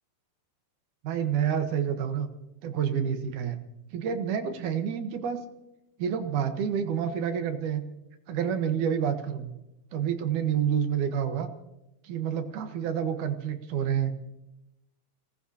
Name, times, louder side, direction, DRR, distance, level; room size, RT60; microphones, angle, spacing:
voice 1, 1.0-2.3 2.6-3.6 3.9-5.4 6.0-7.8 8.3-9.5 9.9-11.5 12.0-14.1, right 8 dB, 85° right, 7 dB, 2.8 m, -28 dB
28.0 x 18.0 x 2.8 m, 0.91 s
omnidirectional pair, 3.4 m